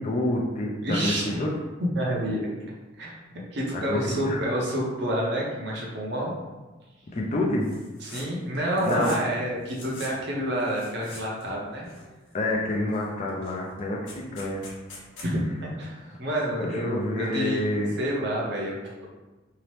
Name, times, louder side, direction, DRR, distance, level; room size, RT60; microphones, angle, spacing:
voice 1, 0.0-1.1 1.4-1.5 3.9-4.4 7.1-7.7 8.8-9.1 12.3-14.7 16.6-17.9, left 1 dB, 35° left, -1 dB, 0.4 m, -28 dB
voice 2, 0.8-1.5 1.8-2.5 3.0-6.3 8.0-11.9 15.2-19.1, equal, 60° right, -3 dB, 0.6 m, -29 dB
sound 1, 7.6-8.3 8.5-9.3 9.6-10.1 10.6-11.5 11.8-12.4 12.9-13.0 13.3-15.3, left 2 dB, 70° left, 0.8 m, -44 dB
2.8 x 2.0 x 3.1 m, 1.2 s
head